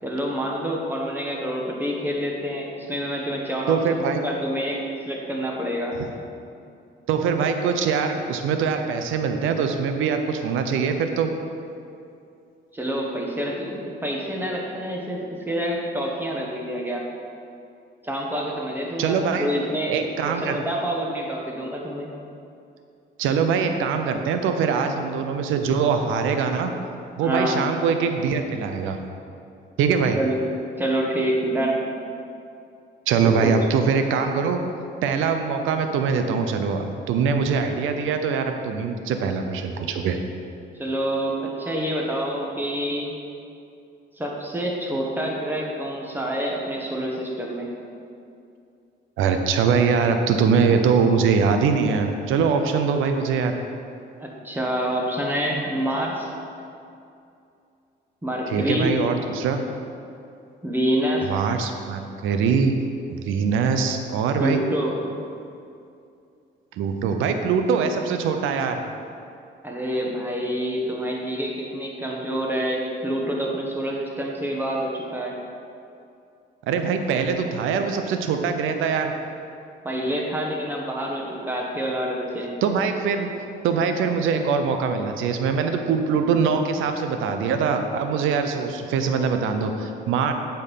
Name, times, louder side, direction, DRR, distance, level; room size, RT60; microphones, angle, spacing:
voice 1, 0.0-6.0 12.7-17.0 18.0-19.9 20.2-22.1 27.2-27.6 30.2-30.4 30.8-31.8 33.2-33.5 40.8-43.1 44.2-47.7 50.7-50.8 54.2-56.3 58.2-59.0 60.6-61.3 64.4-64.9 69.6-75.4 79.8-82.5, equal, 10° right, -2 dB, 1.5 m, -27 dB
voice 2, 3.7-4.2 6.0-6.1 7.1-11.3 19.0-19.5 19.9-20.6 23.2-26.7 27.2-29.0 29.8-30.2 33.1-34.6 35.0-40.2 49.2-53.6 58.5-59.6 61.3-62.7 63.1-64.6 66.8-68.8 76.7-79.1 82.6-90.3, right 5 dB, 90° right, 6 dB, 0.7 m, -23 dB
8.1 x 4.5 x 5.5 m, 2.5 s
cardioid pair, 90°, 20 cm